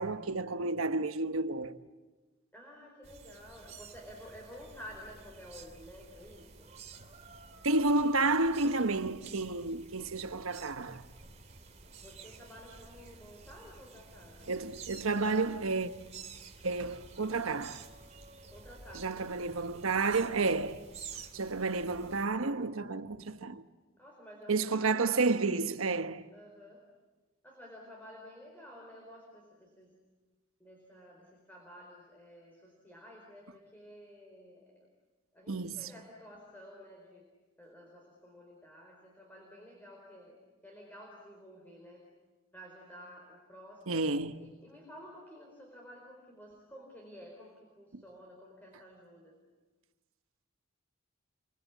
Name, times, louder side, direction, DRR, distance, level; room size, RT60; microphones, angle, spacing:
voice 1, 0.0-1.8 7.6-11.0 14.5-15.9 16.6-17.8 18.9-20.9 21.3-23.6 24.5-26.2 35.5-35.9 43.9-44.5 47.9-48.0, right 3 dB, 80° right, 1.2 m, -31 dB
voice 2, 2.5-6.7 11.9-14.5 18.5-19.2 21.3-21.6 24.0-25.2 26.3-26.9 27.4-29.9 30.6-34.9 35.3-37.2 37.6-40.4 40.6-42.0 42.5-44.0 44.4-49.3, equal, 10° left, 4.5 m, -52 dB
sound 1, 3.0-22.3, right 5 dB, 30° right, 2.7 m, -51 dB
29.0 x 24.5 x 8.4 m
head